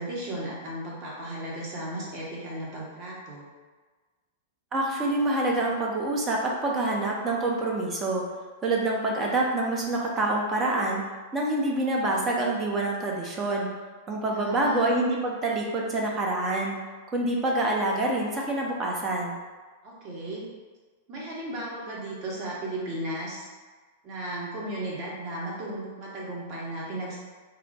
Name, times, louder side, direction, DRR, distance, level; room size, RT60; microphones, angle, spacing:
voice 1, 0.0-3.5 14.3-14.9 19.8-20.4 21.1-23.5 24.0-27.2, right 1 dB, 40° right, -5 dB, 1.2 m, -35 dB
voice 2, 4.7-8.2 8.6-11.0 11.3-13.7 14.1-16.7 17.1-19.4, right 2 dB, 25° right, -2 dB, 0.7 m, -26 dB
2.8 x 2.1 x 4.1 m, 1.4 s
figure-of-eight pair, 100°, 0 cm